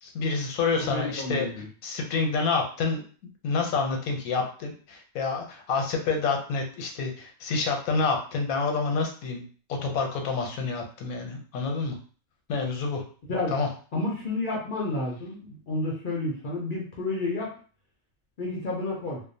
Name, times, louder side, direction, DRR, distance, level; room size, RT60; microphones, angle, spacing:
voice 1, 0.0-1.5 1.8-3.0 3.4-9.4 9.7-12.0 12.5-13.0 13.5-13.7, left 4 dB, 85° left, 3 dB, 1.1 m, -28 dB
voice 2, 0.8-1.7 13.3-13.5 13.9-17.5 18.4-19.2, left 2 dB, 55° left, -3 dB, 0.5 m, -30 dB
2.6 x 2.0 x 2.6 m, 0.41 s
omnidirectional pair, 1.4 m